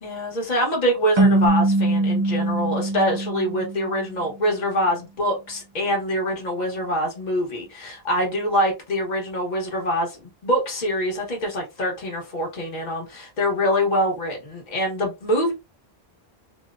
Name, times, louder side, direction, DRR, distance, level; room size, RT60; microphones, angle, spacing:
voice 1, 0.0-15.5, equal, 45° left, 1.2 m, -24 dB
sound 1, 1.2-4.3, right 2 dB, 45° right, 0.4 m, -22 dB
2.7 x 2.1 x 2.4 m
omnidirectional pair, 1.1 m